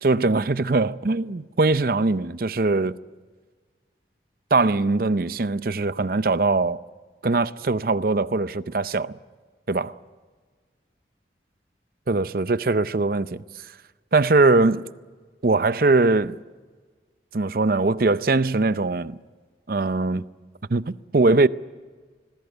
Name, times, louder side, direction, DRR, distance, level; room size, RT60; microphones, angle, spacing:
voice 1, 0.0-3.0 4.5-6.8 7.2-9.1 9.7-10.0 12.1-13.4 14.1-14.8 15.4-16.4 17.3-19.2 19.7-20.2 20.7-21.5, right 3 dB, 50° right, 0.6 m, -21 dB
26.5 x 19.5 x 8.1 m
head